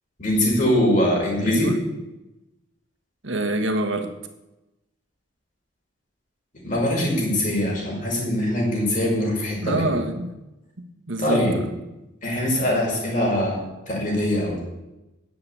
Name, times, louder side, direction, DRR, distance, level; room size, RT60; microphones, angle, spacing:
voice 1, 0.2-1.7 6.6-9.8 11.2-11.5 12.2-13.6 13.9-14.6, left 1 dB, 40° left, -3 dB, 5.5 m, -22 dB
voice 2, 1.5-1.8 3.2-4.1 9.6-10.3 10.8-11.7, right 2 dB, 70° right, 6 dB, 1.6 m, -26 dB
10.5 x 7.9 x 8.7 m, 0.99 s
head